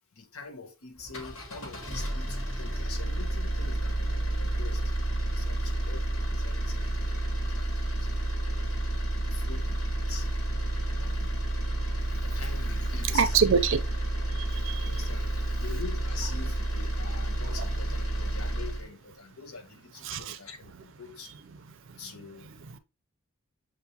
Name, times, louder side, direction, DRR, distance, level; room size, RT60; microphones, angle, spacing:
voice 1, 0.1-4.9 5.3-8.1 9.1-10.3 10.9-11.4 12.0-13.4 14.8-21.3 22.0-22.5, left 5 dB, 90° left, 0.9 m, -45 dB
sound 1, 1.0-18.9, right 1 dB, 70° left, 1.5 m, -30 dB
voice 2, 13.1-13.8 14.2-14.9 20.0-20.4 21.8-22.0 22.6-22.8, right 6 dB, 65° right, 0.5 m, -27 dB
6.8 x 2.6 x 2.8 m
head